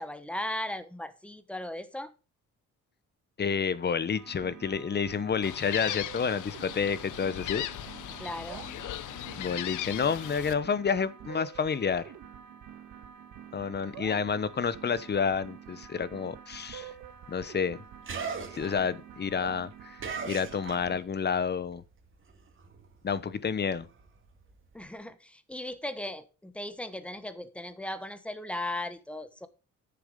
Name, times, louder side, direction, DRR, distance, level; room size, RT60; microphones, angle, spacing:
voice 1, 0.0-2.1 8.2-8.7 24.7-29.5, left 1 dB, 5° left, 1.2 m, -37 dB
voice 2, 3.4-7.7 9.4-12.0 13.5-16.9 17.3-17.8 18.5-21.8 23.0-23.9, left 6 dB, 35° left, 0.9 m, -29 dB
sound 1, 4.2-21.0, right 9 dB, 85° right, 1.6 m, -47 dB
Gull seagull, 5.4-10.5, left 13 dB, 80° left, 0.8 m, -38 dB
sound 2, 16.6-21.3 21.6-24.9, right 5 dB, 40° right, 2.3 m, -41 dB
9.7 x 7.0 x 5.2 m
cardioid pair, 90°, 30 cm